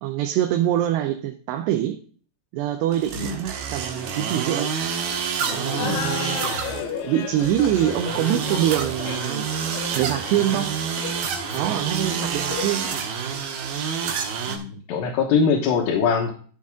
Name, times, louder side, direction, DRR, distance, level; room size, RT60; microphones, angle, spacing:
voice 1, 0.0-2.0 2.5-4.7 5.5-6.4 7.0-9.5 9.7-10.8 11.5-12.9, right 12 dB, 85° right, 2.9 m, -24 dB
sound 1, 2.9-14.6, right 6 dB, 70° right, 3.0 m, -28 dB
Laughter, 5.4-12.9, left 8 dB, 70° left, 2.5 m, -34 dB
voice 2, 14.5-16.3, left 6 dB, 85° left, 3.4 m, -22 dB
13.0 x 6.4 x 3.6 m
omnidirectional pair, 4.8 m